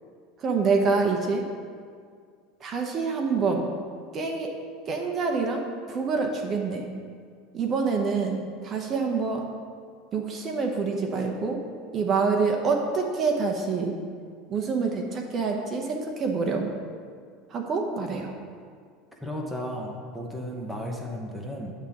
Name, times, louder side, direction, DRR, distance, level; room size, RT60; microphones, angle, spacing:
voice 1, 0.4-1.4 2.6-3.7 4.1-4.5 4.9-6.9 7.5-9.5 10.1-11.6 11.9-14.0 14.5-16.8 17.5-18.3, right 4 dB, 30° right, 2 dB, 0.8 m, -26 dB
voice 2, 19.1-21.7, equal, 5° left, -1 dB, 0.9 m, -34 dB
9.5 x 3.6 x 7.1 m, 2.1 s
supercardioid pair, 150°, 0 cm